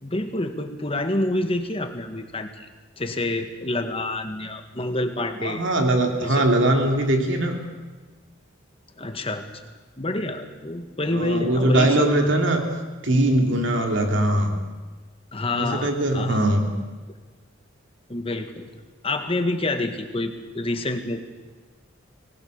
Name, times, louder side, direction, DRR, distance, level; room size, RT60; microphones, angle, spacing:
voice 1, 0.0-2.7 3.0-5.6 6.2-6.5 9.0-9.5 10.0-12.1 15.3-16.4 18.1-18.7 19.0-21.2, left 2 dB, 30° left, 7 dB, 1.8 m, -27 dB
voice 2, 5.4-7.6 11.1-12.6 13.0-14.5 15.5-16.7, right 1 dB, 70° right, 3 dB, 3.2 m, -21 dB
25.0 x 19.5 x 6.7 m, 1.3 s
head